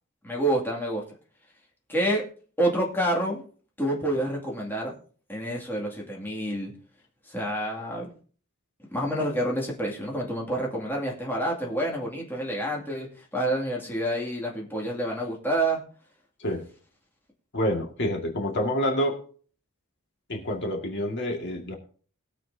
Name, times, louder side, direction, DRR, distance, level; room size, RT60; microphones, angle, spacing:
voice 1, 0.2-1.0 1.9-2.2 2.6-3.4 3.8-4.9 5.3-6.7 7.3-8.1 8.9-15.8, right 1 dB, 10° left, -3 dB, 2.3 m, -28 dB
voice 2, 17.5-19.2 20.3-21.8, equal, 55° left, 1 dB, 2.0 m, -27 dB
21.0 x 7.7 x 2.8 m, 0.43 s
head